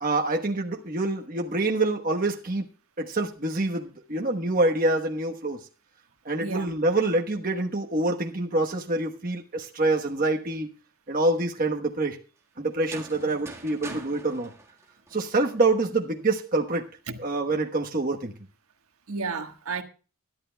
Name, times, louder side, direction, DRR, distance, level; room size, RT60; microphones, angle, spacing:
voice 1, 0.0-2.7 3.0-5.6 6.2-10.7 11.1-12.2 12.6-14.5 15.1-16.9 17.2-18.3, right 2 dB, 40° right, 1.1 m, -26 dB
voice 2, 6.4-6.8 13.2-13.4 13.9-14.0 17.1-17.2 19.1-19.8, right 4 dB, 75° right, 1.4 m, -33 dB
sound 1, 12.7-15.6, right 3 dB, 10° right, 1.6 m, -44 dB
22.5 x 11.0 x 2.3 m
head